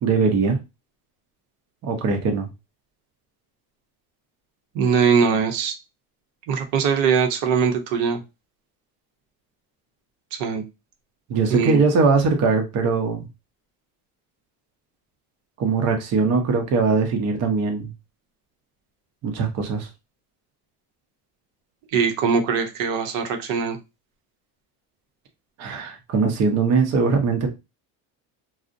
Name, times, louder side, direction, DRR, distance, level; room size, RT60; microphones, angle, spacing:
voice 1, 0.0-0.6 1.8-2.5 11.3-13.3 15.6-17.9 19.2-19.9 25.6-27.5, right 4 dB, 40° right, 4 dB, 0.6 m, -21 dB
voice 2, 4.7-5.7 6.5-8.2 10.3-10.6 11.5-11.8 21.9-23.8, right 6 dB, 80° right, 4 dB, 0.7 m, -21 dB
2.5 x 2.0 x 2.5 m, 0.25 s
cardioid pair, 140°, 42 cm